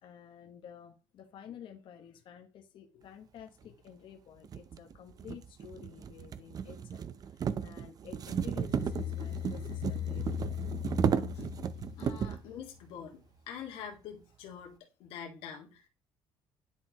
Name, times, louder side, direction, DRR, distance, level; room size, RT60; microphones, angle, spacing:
voice 1, 0.0-10.7 11.4-11.6 12.2-12.3 13.7-13.8, left 9 dB, 65° left, 1.3 m, -51 dB
sound 1, 3.6-3.7 4.4-12.5, right 7 dB, 40° right, 0.6 m, -34 dB
sound 2, 8.7-12.8, left 13 dB, 45° left, 1.5 m, -39 dB
voice 2, 12.0-15.9, left 8 dB, 80° left, 1.9 m, -45 dB
10.5 x 4.2 x 3.0 m
cardioid pair, 105°, 9 cm